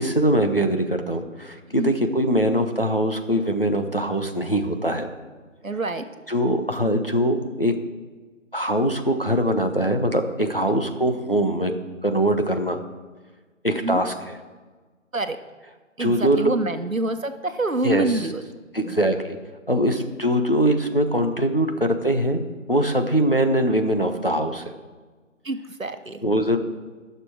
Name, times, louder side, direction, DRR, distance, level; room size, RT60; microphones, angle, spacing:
voice 1, 0.0-5.1 6.3-7.7 8.5-11.7 12.0-12.8 13.6-14.4 16.0-16.5 17.8-18.2 18.7-19.4 19.7-22.4 22.7-24.6 26.2-26.6, right 1 dB, 45° left, 5 dB, 1.0 m, -22 dB
voice 2, 5.6-6.1 13.8-14.0 15.1-15.4 16.0-18.4 18.8-19.0 25.4-26.2, right 2 dB, 80° right, 9 dB, 1.1 m, -26 dB
19.5 x 6.9 x 4.8 m, 1.4 s
figure-of-eight pair, 180°, 39 cm